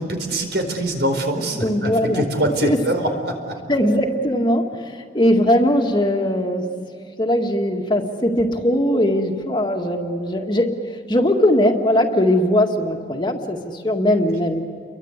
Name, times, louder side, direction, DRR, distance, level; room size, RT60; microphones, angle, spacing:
voice 1, 0.0-3.6, right 1 dB, 70° right, 5 dB, 4.6 m, -24 dB
voice 2, 1.6-2.2 2.6-2.8 3.7-6.7 7.2-14.6, left 1 dB, 25° left, 3 dB, 2.0 m, -20 dB
30.0 x 23.5 x 8.2 m, 2.3 s
head